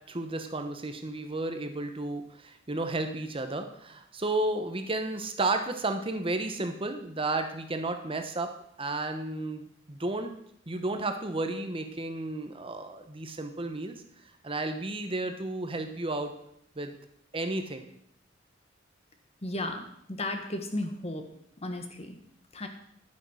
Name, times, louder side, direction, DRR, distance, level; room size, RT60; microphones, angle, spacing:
voice 1, 0.1-8.5 8.8-10.3 10.7-14.0 14.4-16.3 16.8-16.9 17.3-17.8, right 2 dB, 30° right, 7 dB, 1.1 m, -32 dB
voice 2, 19.4-21.3 21.6-22.2 22.5-22.7, left 1 dB, 35° left, 6 dB, 1.5 m, -34 dB
11.0 x 9.3 x 6.4 m, 0.70 s
head